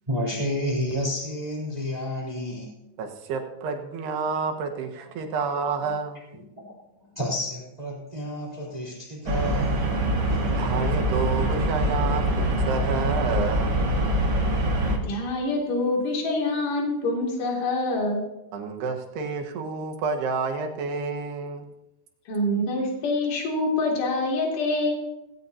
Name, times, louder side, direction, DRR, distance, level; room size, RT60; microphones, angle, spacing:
voice 1, 0.1-2.7 5.3-5.9 6.5-6.6 6.9-10.4, equal, 10° right, -4 dB, 2.8 m, -31 dB
voice 2, 3.0-6.2 10.4-13.8 18.5-21.6, right 5 dB, 85° right, 3 dB, 3.4 m, -29 dB
sound 1, 9.3-15.0, right 1 dB, 45° right, 1.4 m, -24 dB
voice 3, 15.0-18.3 22.3-24.9, left 2 dB, 55° left, -1 dB, 4.1 m, -25 dB
17.5 x 17.0 x 2.8 m, 0.93 s
omnidirectional pair, 4.6 m